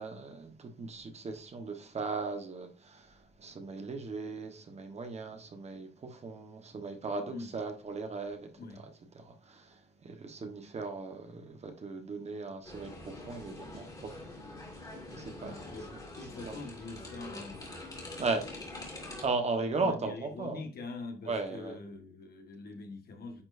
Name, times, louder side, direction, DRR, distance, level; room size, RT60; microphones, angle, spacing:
voice 1, 0.0-8.5 9.1-14.1 15.1-15.6 18.2-18.4 19.2-20.6 21.3-21.8, right 3 dB, 35° right, 1.1 m, -37 dB
voice 2, 7.2-7.5 8.5-8.9 15.4-15.9 16.1-17.7 19.6-23.4, left 3 dB, 60° left, 1.5 m, -44 dB
sound 1, 12.6-19.3, left 2 dB, 20° left, 2.2 m, -45 dB
9.7 x 4.4 x 2.6 m
wide cardioid pair, 175°, 18 cm